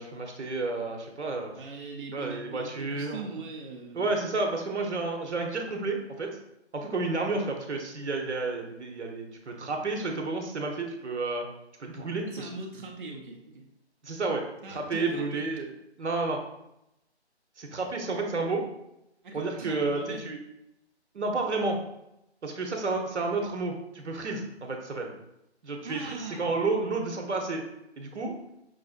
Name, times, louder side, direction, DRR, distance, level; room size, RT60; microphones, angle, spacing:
voice 1, 0.0-1.5 2.1-3.3 3.9-6.4 6.7-11.4 11.8-12.5 14.0-15.7 16.0-16.4 17.6-18.6 19.3-20.4 21.1-21.8 22.4-25.1 25.6-27.6 28.0-28.3, right 3 dB, 85° right, 3 dB, 0.9 m, -31 dB
voice 2, 1.5-4.1 7.3-7.6 12.3-13.7 14.6-15.4 19.2-20.2 25.8-26.5, right 3 dB, 50° right, 0 dB, 0.5 m, -40 dB
5.4 x 2.6 x 2.4 m, 0.85 s
hypercardioid pair, 170°, 34 cm